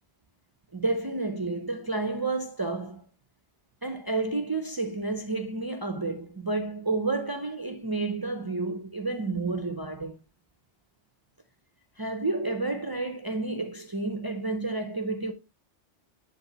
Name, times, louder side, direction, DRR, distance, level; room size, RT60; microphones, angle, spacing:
voice 1, 0.7-3.0 3.8-10.2 12.0-15.3, right 3 dB, 25° right, 0.6 m, -30 dB
9.8 x 3.3 x 3.9 m
omnidirectional pair, 1.2 m